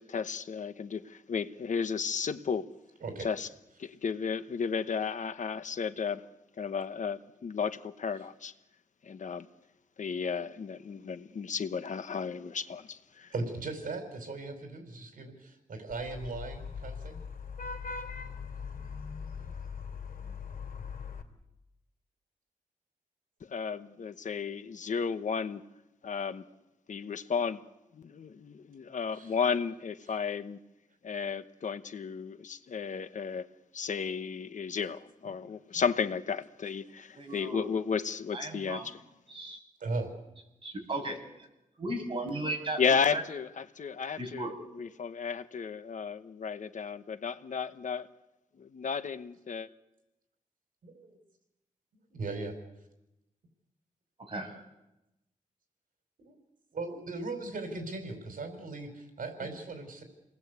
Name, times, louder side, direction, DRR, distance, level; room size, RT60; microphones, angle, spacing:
voice 1, 0.0-2.7 3.2-3.5 3.8-6.2 6.6-8.5 9.0-9.5 10.0-13.3 23.5-25.6 26.0-26.4 26.9-27.7 27.9-30.6 31.0-33.5 33.7-39.0 42.8-48.1 48.6-49.7 59.4-59.5, left 6 dB, 65° left, 11 dB, 1.1 m, -33 dB
voice 2, 13.3-17.2 29.1-29.3 39.8-40.1 50.8-51.2 52.1-52.6 56.2-56.4 56.7-60.0, right 3 dB, 80° right, 5 dB, 5.1 m, -38 dB
Vehicle horn car horn honking / Traffic noise roadway noise, 15.9-21.2, left 5 dB, 85° left, 3.2 m, -40 dB
voice 3, 37.1-37.7 38.3-38.9 39.3-39.6 40.6-41.2 41.8-42.8 43.1-43.2 44.2-44.5 54.2-54.5, right 1 dB, 40° right, 2 dB, 6.5 m, -36 dB
29.0 x 19.5 x 8.2 m, 0.94 s
wide cardioid pair, 135°, 14 cm